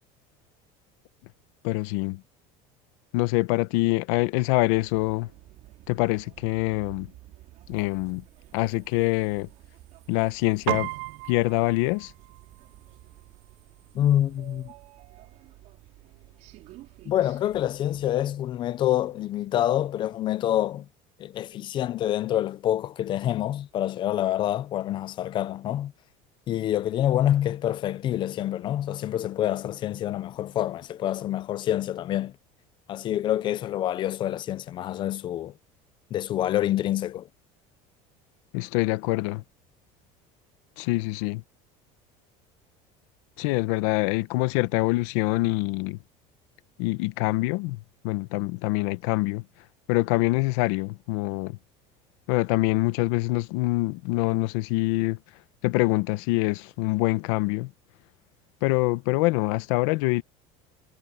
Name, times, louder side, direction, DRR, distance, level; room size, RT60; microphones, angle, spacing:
voice 1, 1.6-2.2 3.1-5.3 5.9-7.1 7.7-8.2 8.5-9.5 10.1-10.9 11.3-12.1 38.5-39.4 40.8-41.4 43.4-46.0 46.8-49.4 49.9-51.6 52.3-55.2 55.6-57.7 58.6-60.2, left 21 dB, 85° left, 1.0 m, -25 dB
sound 1, 4.5-18.4, right 16 dB, 50° right, 4.4 m, -52 dB
Piano, 10.7-20.3, right 25 dB, 80° right, 0.6 m, -40 dB
voice 2, 13.9-14.7 17.1-20.9 21.2-25.9 26.5-32.3 32.9-35.5 36.1-37.3, left 12 dB, 30° left, 0.5 m, -27 dB
cardioid pair, 175°, 16 cm